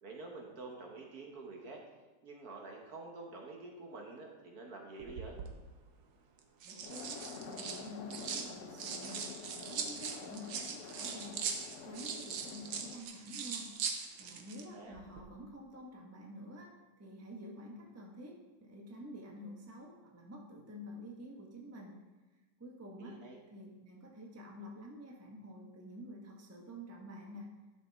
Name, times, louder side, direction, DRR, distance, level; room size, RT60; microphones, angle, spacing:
voice 1, 0.0-1.8 2.2-5.4 14.5-15.0 23.0-23.4, right 3 dB, 55° right, 1 dB, 1.5 m, -48 dB
sound 1, 5.0-5.5 6.4-8.5 8.8-14.6 14.9-15.2, right 6 dB, 80° right, 1.6 m, -41 dB
voice 2, 6.6-11.4 11.8-13.7 14.2-22.0 22.6-23.2 23.5-27.5, equal, 10° right, -1 dB, 0.8 m, -49 dB
sound 2, 6.8-13.0, left 6 dB, 90° left, 0.6 m, -49 dB
11.5 x 6.0 x 3.5 m, 1.2 s
omnidirectional pair, 2.0 m